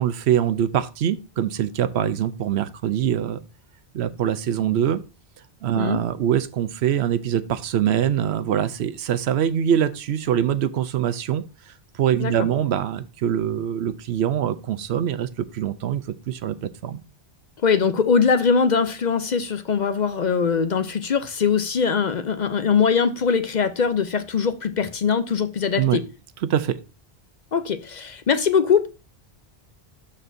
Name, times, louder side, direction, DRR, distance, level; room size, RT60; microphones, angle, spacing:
voice 1, 0.0-3.4 3.9-5.0 5.6-17.0 25.8-26.0 26.4-26.8, right 9 dB, 80° right, 0.9 m, -24 dB
voice 2, 17.6-26.0 27.5-28.9, left 6 dB, 50° left, 0.6 m, -21 dB
12.0 x 4.3 x 2.6 m
omnidirectional pair, 1.1 m